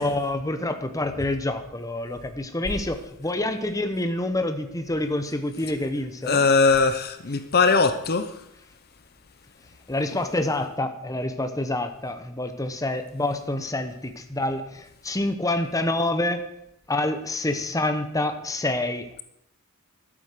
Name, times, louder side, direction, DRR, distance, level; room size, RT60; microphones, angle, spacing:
voice 1, 0.0-6.4 9.9-16.4 16.9-19.2, left 1 dB, 15° left, 8 dB, 1.0 m, -27 dB
voice 2, 6.2-8.3, left 4 dB, 45° left, 10 dB, 0.8 m, -20 dB
12.0 x 8.9 x 6.7 m, 0.76 s
head